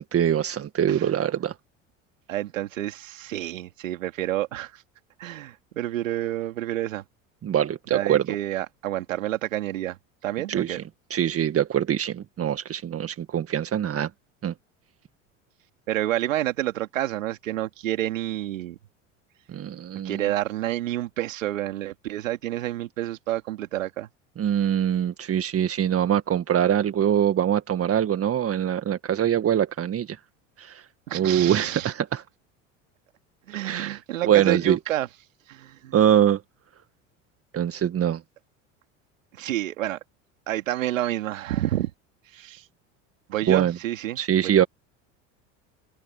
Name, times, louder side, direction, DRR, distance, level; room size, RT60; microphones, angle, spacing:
voice 1, 0.0-1.5 7.4-8.2 10.5-10.8 11.1-14.1 14.4-14.5 19.5-20.3 24.4-30.2 30.6-30.8 31.1-32.2 33.6-34.8 35.9-36.4 37.5-38.2 43.5-43.8 44.2-44.6, right 10 dB, 35° right, 1.8 m, -23 dB
voice 2, 2.3-4.8 5.2-7.0 7.9-10.0 10.2-10.8 15.9-18.8 20.0-24.1 31.1-31.9 33.5-35.1 35.5-36.0 39.3-40.0 40.5-41.9 42.3-42.6 43.3-44.6, right 14 dB, 85° right, 2.6 m, -29 dB
hypercardioid pair, 80°, 38 cm